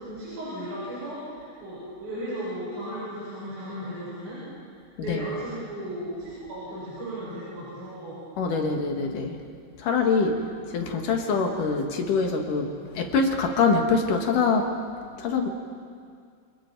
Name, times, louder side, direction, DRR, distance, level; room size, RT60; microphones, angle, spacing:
voice 1, 0.0-4.4 5.0-8.2, right 1 dB, 50° right, -9 dB, 9.1 m, -35 dB
voice 2, 8.4-9.4 9.8-10.4 10.7-14.7 15.2-15.5, left 4 dB, 55° left, 3 dB, 2.8 m, -24 dB
29.0 x 27.5 x 4.7 m, 2.2 s
omnidirectional pair, 5.3 m